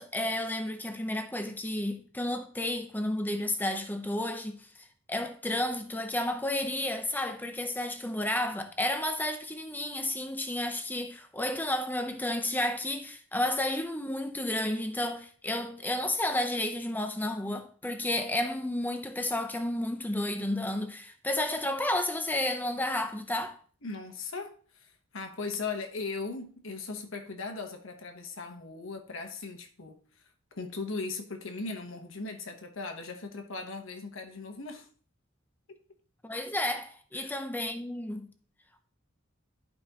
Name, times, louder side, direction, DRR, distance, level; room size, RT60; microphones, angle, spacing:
voice 1, 0.0-4.6 5.1-23.6 36.2-38.3, left 1 dB, 10° left, 0.7 m, -31 dB
voice 2, 23.8-30.0 30.5-34.9 35.7-35.8 37.1-37.3, left 4 dB, 70° left, 1.2 m, -38 dB
11.5 x 5.2 x 3.0 m
head